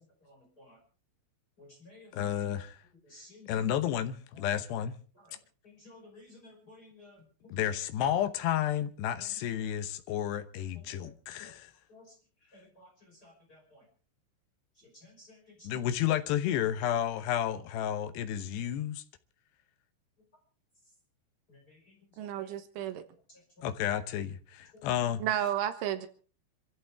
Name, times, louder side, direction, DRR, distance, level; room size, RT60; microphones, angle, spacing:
voice 1, 0.3-0.8 1.6-2.1 3.0-3.5 5.3-5.4 5.6-7.2 11.9-12.1 12.5-12.9 13.2-13.6 15.0-15.4 15.8-15.9 21.5-21.6 21.9-22.0 23.6-23.7, left 2 dB, 20° left, 5.5 m, -54 dB
voice 2, 2.1-2.8 3.5-4.9 7.5-11.7 15.6-19.0 23.6-25.2, left 10 dB, 75° left, 2.8 m, -31 dB
voice 3, 22.2-23.0 25.2-26.1, right 11 dB, 80° right, 3.6 m, -32 dB
26.5 x 14.5 x 3.5 m
omnidirectional pair, 5.6 m